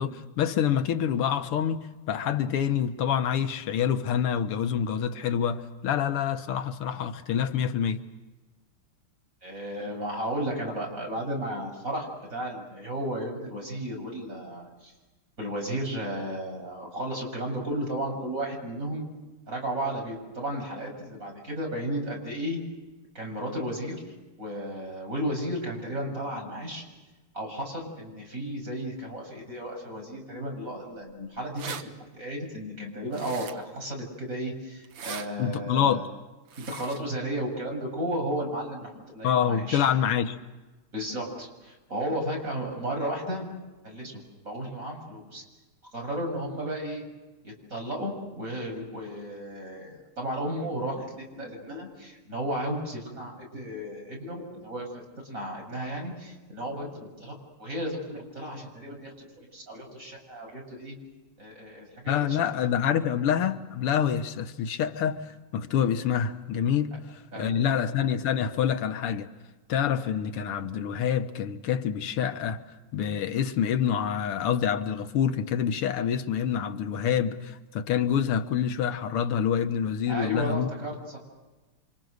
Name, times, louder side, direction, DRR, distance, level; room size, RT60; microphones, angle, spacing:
voice 1, 0.0-8.0 35.4-36.1 39.2-40.4 62.1-69.3 69.7-72.6 72.9-80.7, left 8 dB, 90° left, 2.1 m, -27 dB
voice 2, 9.4-14.9 15.4-19.1 19.5-22.6 23.1-26.9 27.3-36.1 36.6-39.9 40.9-43.5 43.8-45.4 45.9-47.1 47.4-61.0 61.4-62.7 67.3-67.7 80.1-81.2, right 1 dB, 35° right, 7.2 m, -34 dB
sound 1, 31.1-31.2 31.4-31.8 33.1-33.8 34.8-35.3 36.5-37.0, right 7 dB, 85° right, 2.3 m, -39 dB
29.0 x 26.0 x 6.6 m
omnidirectional pair, 2.4 m